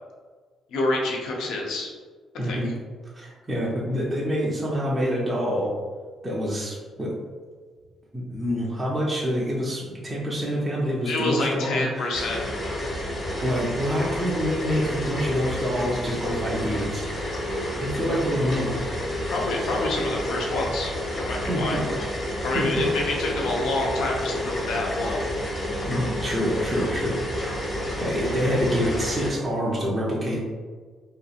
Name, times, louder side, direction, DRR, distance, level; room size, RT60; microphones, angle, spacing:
voice 1, 0.7-1.9 2.4-2.6 11.0-12.4 19.3-21.8 22.4-25.2, left 2 dB, 80° left, -1 dB, 0.6 m, -27 dB
voice 2, 2.4-2.7 3.1-5.7 6.2-7.1 8.1-12.1 13.4-17.0 17.8-18.7 21.5-21.8 22.5-22.8 25.8-27.2 28.0-30.4, equal, 15° right, -6 dB, 0.6 m, -26 dB
sound 1, 12.1-29.3, left 1 dB, 40° left, 0.9 m, -30 dB
2.9 x 2.4 x 2.4 m, 1.5 s
cardioid pair, 90°, 0 cm